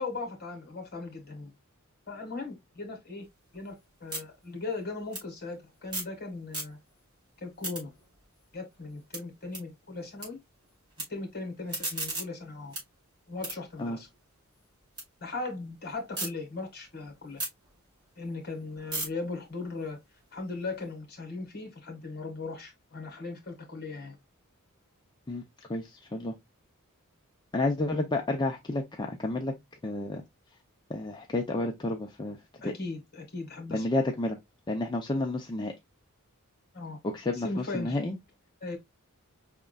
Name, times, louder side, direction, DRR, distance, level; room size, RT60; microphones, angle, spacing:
voice 1, 0.0-1.5 2.1-3.3 3.5-6.8 7.4-7.9 8.5-10.4 11.1-12.7 13.3-14.1 15.2-17.4 18.2-20.0 20.3-24.2 32.6-33.8 36.7-37.0 37.3-38.0 38.6-38.8, left 3 dB, 45° left, 1.6 m, -38 dB
sound 1, 3.2-6.2 6.4-7.1 7.4-10.3 10.6-11.0 11.5-15.1 15.4-16.3 16.7-20.9, right 2 dB, 20° right, 3.0 m, -40 dB
voice 2, 25.7-26.3 27.5-29.5 29.8-30.2 30.9-32.4 32.6-32.7 33.7-34.4 34.7-35.7 37.0-38.2, left 2 dB, 20° left, 0.5 m, -30 dB
5.2 x 3.6 x 2.2 m
head